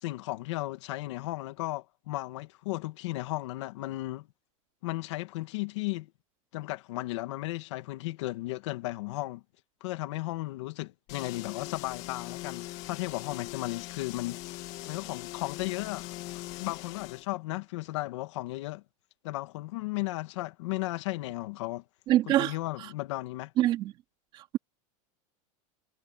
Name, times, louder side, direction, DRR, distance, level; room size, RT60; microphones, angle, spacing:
voice 1, 0.0-4.3 4.8-6.1 6.5-9.4 9.8-14.4 14.9-16.1 16.6-18.8 19.2-21.8 22.4-23.5, left 19 dB, 55° left, 2.2 m, -35 dB
sound 1, 11.1-17.3, left 19 dB, 40° left, 2.4 m, -41 dB
voice 2, 22.1-22.5 23.6-23.9 24.3-24.6, right 14 dB, 30° right, 2.3 m, -25 dB
supercardioid pair, 180°, 17 cm